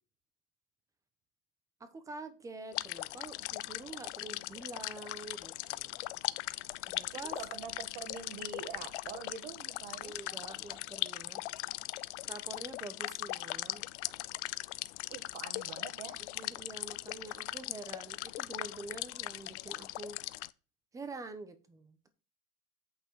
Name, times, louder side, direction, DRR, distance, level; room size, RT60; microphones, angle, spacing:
voice 1, 1.8-6.2 6.9-7.4 10.0-11.5 12.2-13.8 16.2-20.2 20.9-22.1, right 3 dB, 10° right, 10 dB, 0.9 m, -47 dB
sound 1, 2.7-20.5, left 19 dB, 75° left, 0.6 m, -40 dB
voice 2, 7.2-10.2 15.1-16.2, right 7 dB, 70° right, 8 dB, 1.8 m, -45 dB
8.4 x 6.1 x 4.7 m, 0.32 s
supercardioid pair, 170°, 35 cm